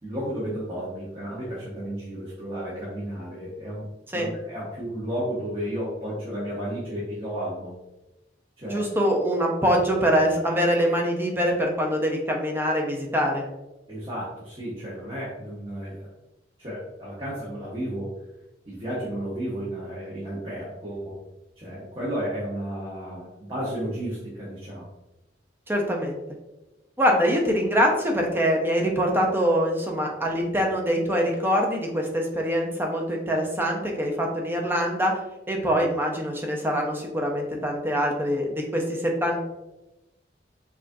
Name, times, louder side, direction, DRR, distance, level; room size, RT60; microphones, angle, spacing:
voice 1, 0.0-7.8 8.6-8.8 13.9-16.1 16.6-18.1 18.6-21.2 21.6-24.9, equal, 30° right, -7 dB, 0.9 m, -33 dB
voice 2, 8.7-13.4 25.7-26.2 27.0-35.1 35.5-39.4, equal, 15° right, 0 dB, 0.6 m, -24 dB
4.9 x 2.4 x 2.6 m, 0.97 s
head